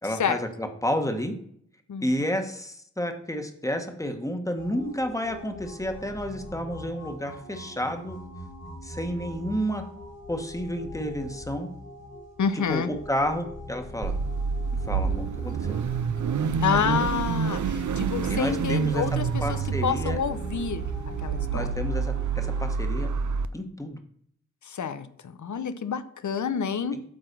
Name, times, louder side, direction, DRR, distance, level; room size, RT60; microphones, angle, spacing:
voice 1, 0.0-1.3 2.0-8.2 8.8-9.8 10.3-11.7 12.5-14.1 14.8-15.7 16.7-17.0 18.3-19.0 19.4-20.2 21.5-23.1 23.5-24.0 26.9-27.0, equal, 10° left, 5 dB, 1.3 m, -31 dB
sound 1, 4.6-22.7, left 1 dB, 65° left, 2.1 m, -42 dB
voice 2, 12.4-12.9 16.6-20.9 21.2-21.7 24.6-27.0, left 7 dB, 90° left, 12 dB, 0.7 m, -28 dB
Car / Idling / Accelerating revving vroom, 14.0-23.5, right 6 dB, 85° right, 0.5 m, -28 dB
8.7 x 4.0 x 6.7 m, 0.66 s
wide cardioid pair, 70°, 29 cm